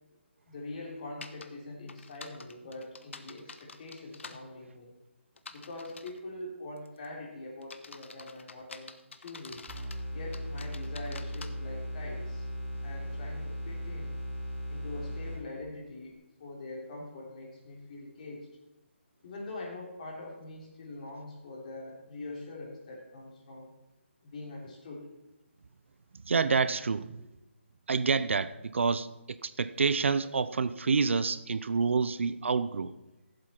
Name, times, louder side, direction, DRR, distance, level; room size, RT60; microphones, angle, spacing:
voice 1, 0.5-4.9 5.5-8.9 9.2-9.6 10.1-12.5 12.8-14.2 14.7-18.5 19.2-23.7 24.2-25.1, left 2 dB, 40° left, -2 dB, 3.3 m, -43 dB
sound 1, 1.2-1.5 1.9-4.4 5.4-6.2 6.8-7.1 7.6-10.0 10.3-11.5, left 4 dB, 70° left, 1.1 m, -47 dB
sound 2, 9.7-15.7, equal, 10° right, 3.2 m, -37 dB
voice 2, 26.3-27.2 27.9-32.9, right 5 dB, 70° right, 14 dB, 0.6 m, -28 dB
14.0 x 7.8 x 4.4 m, 0.98 s
hypercardioid pair, 170°, 7 cm